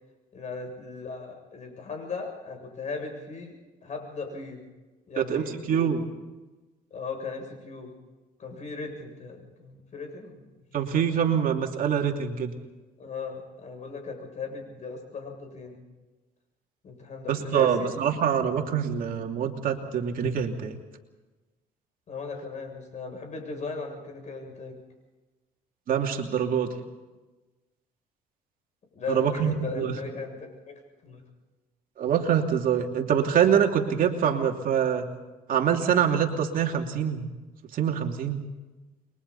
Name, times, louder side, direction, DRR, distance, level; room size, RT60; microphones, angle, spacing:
voice 1, 0.3-3.6 3.8-4.7 5.1-5.8 6.9-8.0 8.4-10.6 13.0-15.8 16.8-17.9 22.1-24.8 28.9-31.2, left 4 dB, 45° left, 3 dB, 7.6 m, -37 dB
voice 2, 5.2-6.1 10.7-12.5 17.3-20.8 25.9-26.7 29.1-29.9 32.0-35.0 35.5-37.2 37.7-38.4, right 8 dB, 55° right, 2 dB, 2.9 m, -25 dB
29.5 x 23.0 x 4.3 m, 1.2 s
cardioid pair, 110°, 17 cm